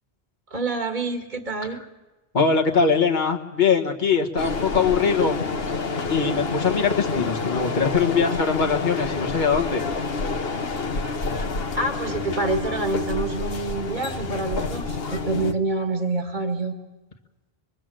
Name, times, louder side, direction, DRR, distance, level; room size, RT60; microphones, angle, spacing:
voice 1, 0.5-1.8 11.7-16.7, right 3 dB, 45° right, 6 dB, 2.2 m, -27 dB
voice 2, 2.3-5.4 6.1-9.8, left 5 dB, 45° left, 2 dB, 1.8 m, -22 dB
sound 1, 4.4-15.5, left 4 dB, 65° left, 1.4 m, -28 dB
25.5 x 22.0 x 7.8 m, 1.1 s
omnidirectional pair, 1.1 m